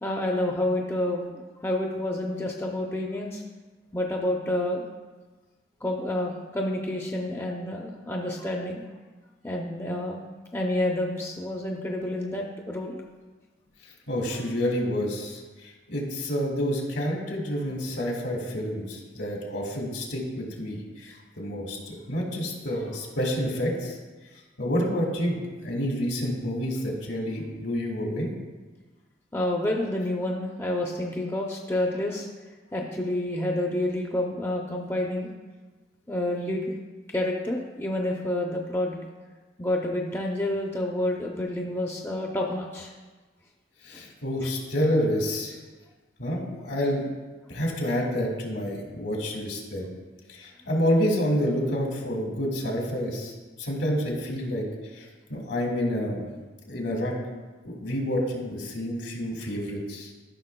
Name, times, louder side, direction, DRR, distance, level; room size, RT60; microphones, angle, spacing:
voice 1, 0.0-3.4 3.9-4.9 5.8-8.8 9.4-10.2 10.5-13.0 29.3-32.3 32.7-35.3 36.1-36.6 37.1-39.0 39.6-42.9 44.4-44.5, left 1 dB, 15° left, 0 dB, 0.5 m, -29 dB
voice 2, 14.1-24.0 24.6-28.3 43.8-45.6 46.2-47.0 47.5-49.9 50.3-54.6 54.9-56.3 56.7-57.1 57.6-60.1, equal, 75° left, -1 dB, 1.8 m, -28 dB
13.5 x 5.8 x 2.2 m, 1.3 s
head